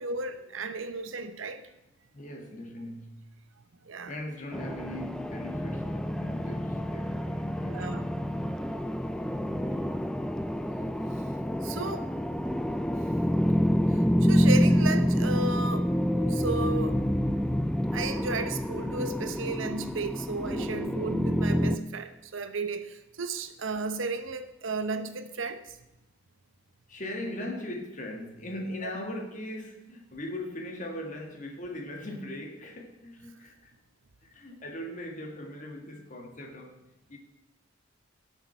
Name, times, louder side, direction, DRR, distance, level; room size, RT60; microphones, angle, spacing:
voice 1, 0.0-1.6 3.8-4.1 7.7-8.0 11.6-12.1 13.9-15.9 16.3-17.0 17.9-25.8, right 3 dB, 75° right, 0.8 m, -34 dB
voice 2, 2.1-3.4 4.1-8.0 26.9-33.7 34.2-37.2, left 1 dB, 40° left, 1.6 m, -40 dB
sound 1, 4.5-21.8, equal, 5° left, 0.3 m, -27 dB
18.0 x 6.3 x 4.4 m
head